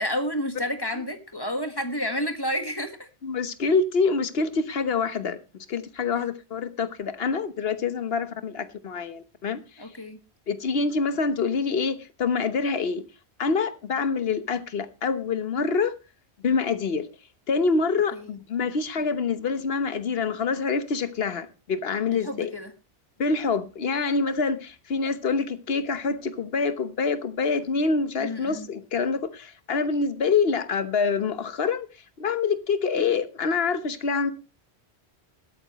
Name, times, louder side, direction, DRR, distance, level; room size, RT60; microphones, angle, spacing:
voice 1, 0.0-3.1 6.1-6.3 9.8-10.2 18.1-18.4 22.1-22.7 28.2-28.7, equal, 20° left, 1.6 m, -30 dB
voice 2, 3.2-5.4 5.7-9.6 10.5-13.1 13.4-15.9 16.4-17.1 17.5-22.5 23.2-31.9 32.2-34.3, left 4 dB, 65° left, 1.3 m, -26 dB
20.5 x 8.8 x 3.0 m
omnidirectional pair, 1.1 m